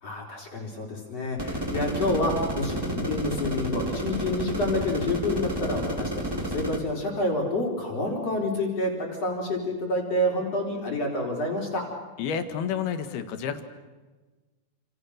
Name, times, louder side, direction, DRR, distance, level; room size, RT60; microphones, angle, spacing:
voice 1, 0.0-11.8, left 1 dB, 40° left, 0 dB, 5.0 m, -28 dB
sound 1, 1.4-6.8, right 1 dB, 5° right, 2.1 m, -31 dB
voice 2, 12.2-13.6, left 7 dB, 75° left, 8 dB, 3.7 m, -30 dB
29.5 x 28.0 x 6.6 m, 1.3 s
omnidirectional pair, 4.6 m